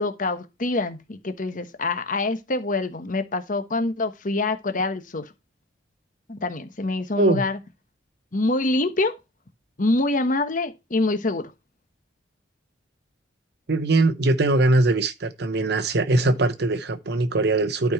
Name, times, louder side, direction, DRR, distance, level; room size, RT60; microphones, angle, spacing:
voice 1, 0.0-5.3 6.3-7.6 8.3-9.1 9.8-11.5, left 2 dB, 45° left, 1.1 m, -25 dB
voice 2, 13.7-17.9, right 2 dB, 60° right, 0.9 m, -21 dB
12.0 x 4.6 x 4.3 m
head